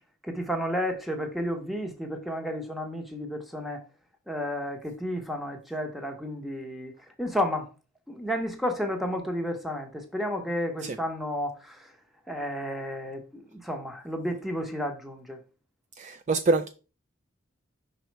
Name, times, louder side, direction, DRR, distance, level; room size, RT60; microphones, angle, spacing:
voice 1, 0.2-3.8 4.3-6.9 7.2-7.7 8.1-11.9 12.3-15.4, equal, ahead, 0.9 m, -32 dB
voice 2, 16.0-16.7, right 3 dB, 35° right, 0.3 m, -25 dB
5.5 x 4.1 x 4.5 m
head